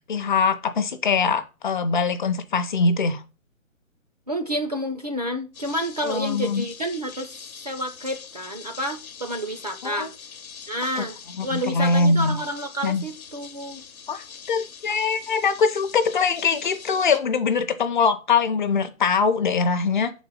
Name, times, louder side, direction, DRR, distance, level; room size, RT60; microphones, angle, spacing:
voice 1, 0.1-3.2 6.0-6.6 9.8-10.1 11.0-11.1 11.4-12.3 12.8-13.0 14.1-20.1, left 4 dB, 35° left, 0.6 m, -22 dB
voice 2, 4.3-10.1 10.7-13.8, equal, 30° right, 0.4 m, -30 dB
sound 1, 5.5-17.2, left 6 dB, 90° left, 1.0 m, -43 dB
5.1 x 4.0 x 5.4 m
hypercardioid pair, 150°, 41 cm